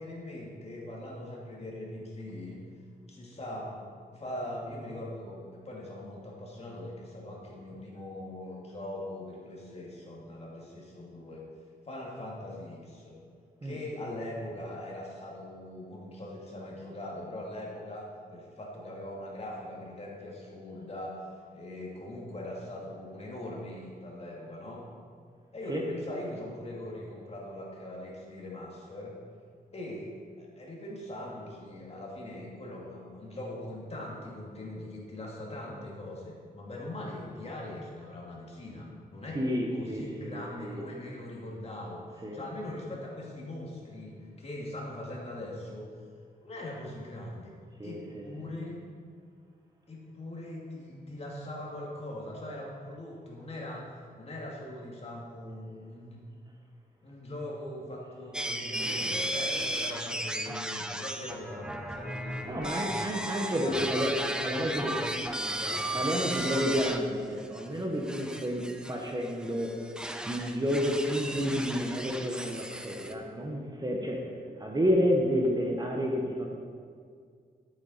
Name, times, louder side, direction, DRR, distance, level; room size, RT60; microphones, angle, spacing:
voice 1, 0.0-2.6 3.1-11.4 11.8-13.2 13.6-21.3 21.5-24.8 25.5-29.1 29.7-39.4 39.7-44.1 44.4-45.9 46.4-47.5 47.8-48.8 49.9-53.9 54.2-56.2 57.0-63.2 63.6-65.9, left 1 dB, 40° left, -3 dB, 2.2 m, -41 dB
voice 2, 39.3-40.8 42.2-42.4 47.8-48.2 62.5-64.1 64.4-65.0 65.9-69.8 70.3-74.2 74.6-76.5, equal, 25° right, 0 dB, 1.2 m, -30 dB
sound 1, 58.3-67.0 67.4-67.7 68.1-73.1, right 1 dB, 5° right, 0.6 m, -35 dB
11.0 x 8.7 x 4.3 m, 2.1 s
wide cardioid pair, 125°, 16 cm